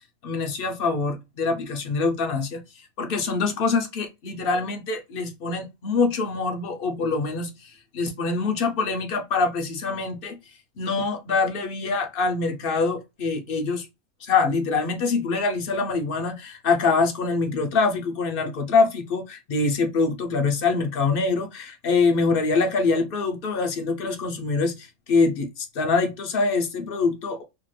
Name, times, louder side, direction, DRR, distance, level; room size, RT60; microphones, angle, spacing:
voice 1, 0.2-2.6 3.0-10.4 10.8-13.9 14.2-27.4, left 4 dB, 60° left, 0.6 m, -24 dB
2.8 x 2.3 x 3.0 m
omnidirectional pair, 1.5 m